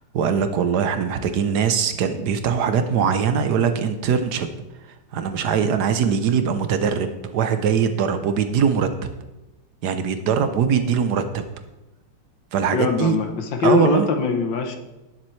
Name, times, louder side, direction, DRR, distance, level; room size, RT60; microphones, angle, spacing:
voice 1, 0.1-4.5 5.1-8.9 9.8-11.4 12.5-13.2 13.6-14.1, right 7 dB, 65° right, 9 dB, 1.1 m, -21 dB
voice 2, 12.7-14.8, left 4 dB, 65° left, 6 dB, 1.6 m, -22 dB
18.0 x 7.2 x 3.2 m, 1.0 s
omnidirectional pair, 2.4 m